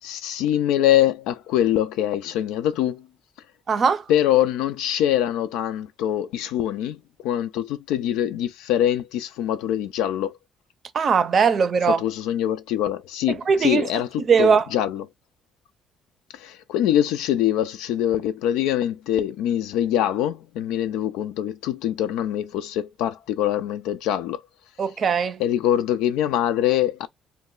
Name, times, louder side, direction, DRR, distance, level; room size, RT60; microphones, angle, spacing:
voice 1, 0.0-3.1 4.1-10.4 11.9-14.1 14.4-15.0 16.3-24.4 25.4-27.1, left 11 dB, 85° left, 0.4 m, -24 dB
voice 2, 3.7-4.0 10.9-12.0 13.5-13.9 14.3-14.7 24.8-25.4, right 6 dB, 50° right, 0.5 m, -19 dB
2.2 x 2.1 x 3.7 m
supercardioid pair, 70°, 0 cm